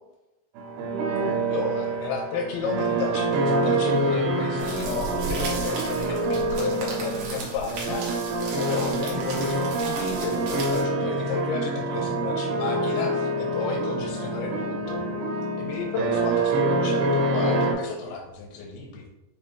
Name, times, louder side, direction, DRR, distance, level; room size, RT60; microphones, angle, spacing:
sound 1, 0.6-17.7, right 2 dB, 85° right, 2.5 m, -26 dB
voice 1, 1.2-8.3 8.6-15.0 15.6-19.1, left 4 dB, 85° left, -1 dB, 2.5 m, -32 dB
sound 2, 4.6-10.8, right 3 dB, 70° right, 1.8 m, -36 dB
6.3 x 2.4 x 3.5 m, 0.96 s
omnidirectional pair, 4.2 m